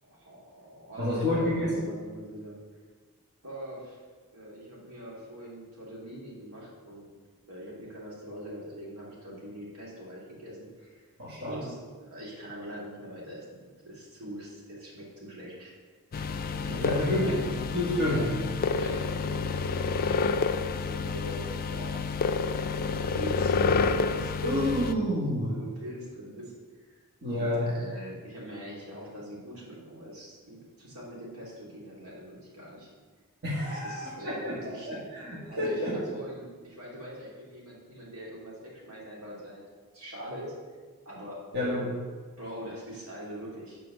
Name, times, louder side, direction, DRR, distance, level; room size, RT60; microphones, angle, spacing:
voice 1, 0.0-2.6 3.4-4.0 4.3-7.0 7.5-11.1 11.4-15.7 16.1-17.5 18.0-18.4 18.7-22.0 23.1-24.9 25.5-27.0 27.3-32.9 33.6-34.9 35.5-39.7 39.9-40.5 41.0-41.4 42.4-43.8, equal, 75° right, -5 dB, 2.7 m, -43 dB
voice 2, 1.0-1.8 11.2-11.5 16.7-17.4 17.7-18.2 24.4-25.5 27.2-27.7 33.4-36.0 41.5-41.9, left 1 dB, 50° right, -7 dB, 2.0 m, -29 dB
sound 1, 16.1-24.9, left 5 dB, 40° left, 0.4 m, -29 dB
7.9 x 4.5 x 6.7 m, 1.5 s
head